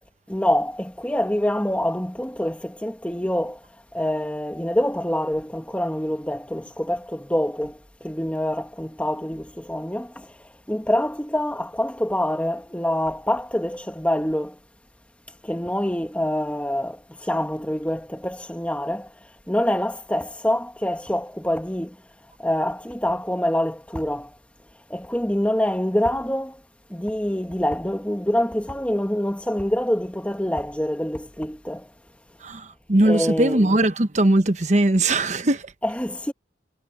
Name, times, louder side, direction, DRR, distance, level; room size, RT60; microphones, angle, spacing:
voice 1, 0.3-3.6 3.9-14.6 15.4-19.1 19.5-22.0 22.4-24.3 24.9-26.6 26.9-31.9 33.0-33.7 35.8-36.3, left 1 dB, 5° left, 1.6 m, -26 dB
voice 2, 32.4-35.6, right 1 dB, 40° right, 1.1 m, -20 dB
head